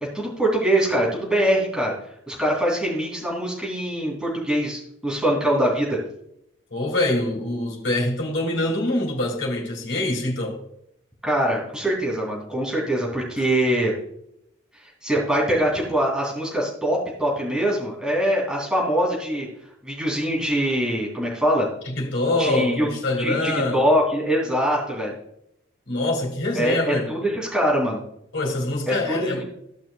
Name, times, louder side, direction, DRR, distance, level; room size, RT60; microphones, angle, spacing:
voice 1, 0.1-1.9 2.3-6.0 11.2-13.9 14.8-19.5 19.8-21.7 22.4-22.9 23.2-25.1 26.5-28.0 28.9-29.4, equal, 5° right, 2.9 m, -23 dB
voice 2, 6.7-10.6 21.9-23.8 25.9-27.1 28.3-29.4, left 2 dB, 60° left, 2.5 m, -25 dB
15.5 x 5.9 x 2.3 m
head